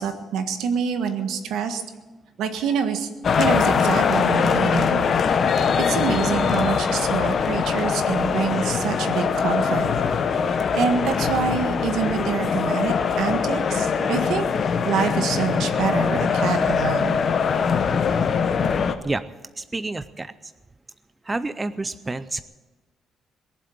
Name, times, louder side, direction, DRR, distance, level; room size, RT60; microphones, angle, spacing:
voice 1, 0.0-1.8 2.4-3.1 3.4-5.0 5.8-9.9 10.7-14.5 14.8-17.2, right 6 dB, 80° right, 7 dB, 1.6 m, -26 dB
sound 1, 3.2-19.0, left 6 dB, 40° left, 0.9 m, -22 dB
voice 2, 19.6-20.5 21.2-22.4, right 2 dB, 15° right, 13 dB, 0.4 m, -29 dB
21.0 x 7.6 x 8.6 m, 1.2 s
cardioid pair, 155°, 0 cm